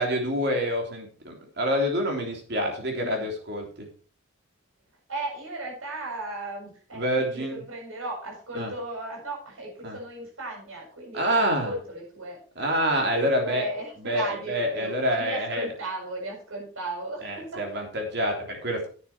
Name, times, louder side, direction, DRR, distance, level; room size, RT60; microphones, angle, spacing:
voice 1, 0.0-3.9 6.9-7.6 8.5-8.7 9.8-10.0 11.1-11.7 12.6-13.6 14.0-15.6 17.2-18.9, equal, 55° right, 1 dB, 3.5 m, -27 dB
voice 2, 2.9-3.3 5.1-12.4 13.1-17.7, right 2 dB, 90° right, 0 dB, 7.2 m, -35 dB
11.0 x 9.2 x 4.5 m, 0.41 s
head